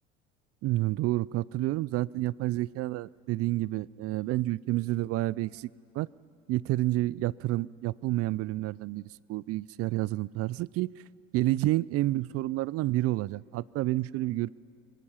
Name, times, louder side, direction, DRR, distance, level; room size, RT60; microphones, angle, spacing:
voice 1, 0.6-5.7 5.9-6.1 6.5-10.9 11.3-14.5, right 17 dB, 50° right, 23 dB, 0.4 m, -29 dB
26.0 x 20.5 x 5.7 m, 2.4 s
hypercardioid pair, 75°, 31 cm